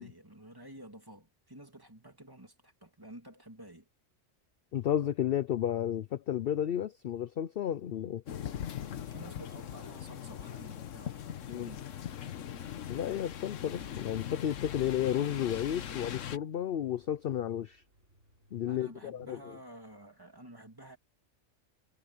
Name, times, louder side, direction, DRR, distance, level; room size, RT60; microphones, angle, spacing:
voice 1, 0.0-3.9 9.1-11.9 18.6-21.0, right 1 dB, 15° right, 2.6 m, -51 dB
voice 2, 4.7-8.2 11.5-11.7 12.9-17.8 18.5-19.6, left 10 dB, 55° left, 0.7 m, -32 dB
sound 1, 8.3-16.4, left 9 dB, 75° left, 1.3 m, -40 dB
sound 2, 13.4-19.7, equal, 65° right, 8.0 m, -69 dB
omnidirectional pair, 1.3 m